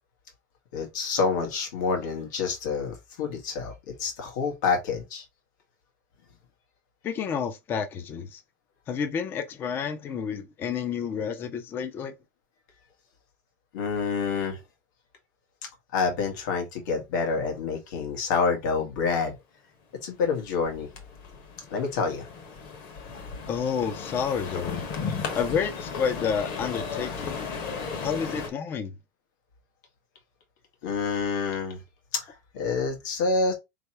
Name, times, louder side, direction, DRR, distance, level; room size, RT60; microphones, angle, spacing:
voice 1, 0.7-5.2 13.7-14.6 15.9-19.4 20.0-20.9 21.7-22.3 30.8-31.8 32.1-33.5, left 4 dB, 80° left, 1.6 m, -28 dB
voice 2, 7.0-8.4 8.9-12.1 23.5-24.8 25.3-27.5 28.0-28.9, left 7 dB, 20° left, 0.5 m, -30 dB
sound 1, 20.4-28.5, left 5 dB, 40° left, 1.1 m, -35 dB
4.4 x 3.4 x 2.9 m
supercardioid pair, 170°, 10 cm